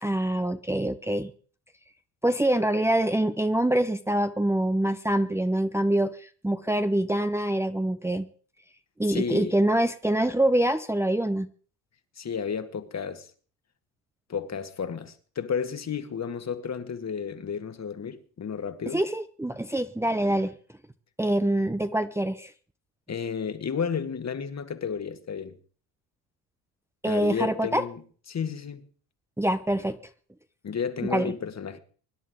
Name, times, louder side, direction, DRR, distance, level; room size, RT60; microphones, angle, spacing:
voice 1, 0.0-1.3 2.2-8.3 9.0-11.5 18.9-20.5 21.2-22.5 27.0-27.8 29.4-30.0 31.1-31.3, right 1 dB, 5° right, 0.9 m, -25 dB
voice 2, 9.1-9.5 12.2-13.3 14.3-19.0 23.1-25.5 27.1-28.0 28.3-28.8 30.6-31.8, left 6 dB, 35° left, 2.0 m, -32 dB
24.5 x 11.0 x 3.8 m
hypercardioid pair, 60°, 44 cm